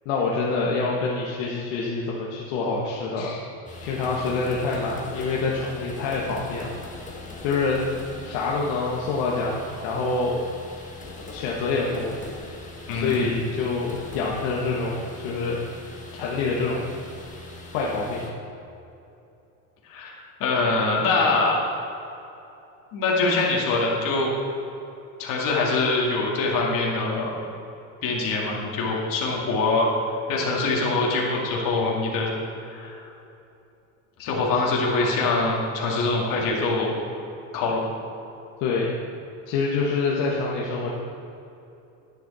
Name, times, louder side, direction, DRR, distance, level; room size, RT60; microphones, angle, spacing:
voice 1, 0.0-3.3 3.8-6.7 7.4-7.8 8.2-10.4 11.3-12.1 12.9-15.6 16.1-16.9 17.7-18.3 38.6-38.9 39.5-40.9, left 4 dB, 70° left, -4 dB, 1.6 m, -26 dB
sound 1, 3.7-18.3, left 2 dB, 20° left, 1.7 m, -41 dB
voice 2, 12.9-13.3 19.9-20.1 20.4-21.6 22.9-24.3 25.2-27.3 28.0-29.9 30.3-32.3 32.6-33.0 34.2-36.9 37.5-37.8, left 3 dB, 50° left, -3 dB, 2.5 m, -24 dB
10.5 x 10.0 x 4.3 m, 2.8 s
supercardioid pair, 130°, 40 cm